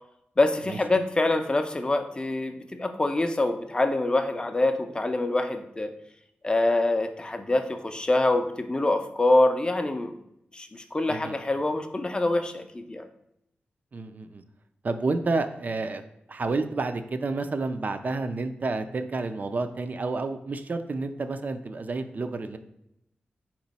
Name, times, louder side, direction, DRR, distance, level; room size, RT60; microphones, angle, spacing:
voice 1, 0.4-5.9 6.4-10.1 10.5-13.1, left 2 dB, 25° left, 7 dB, 0.4 m, -25 dB
voice 2, 13.9-14.4 14.8-16.0 16.3-22.6, right 3 dB, 45° right, 8 dB, 0.4 m, -30 dB
4.4 x 3.0 x 4.1 m, 0.81 s
wide cardioid pair, 90°, 4 cm